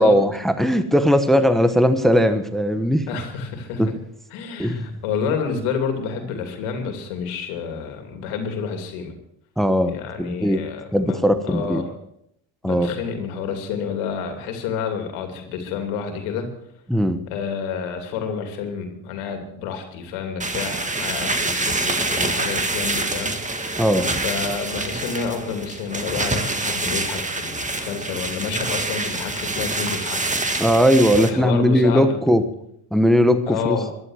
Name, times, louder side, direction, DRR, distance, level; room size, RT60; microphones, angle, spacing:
voice 1, 0.0-3.1 3.8-3.9 4.6-4.9 9.6-10.6 10.9-11.8 12.6-12.9 16.9-17.2 23.8-24.1 30.6-32.5 32.9-33.8, equal, ahead, 10 dB, 1.1 m, -18 dB
voice 2, 3.1-3.8 4.3-9.1 9.9-11.2 11.5-11.9 12.6-16.5 17.3-23.3 24.2-30.4 31.2-32.2 33.5-33.9, left 6 dB, 85° left, 5 dB, 2.8 m, -29 dB
sound 1, 20.4-31.3, right 2 dB, 15° right, 1.7 m, -26 dB
14.5 x 11.5 x 6.3 m, 0.73 s
supercardioid pair, 90°, 49 cm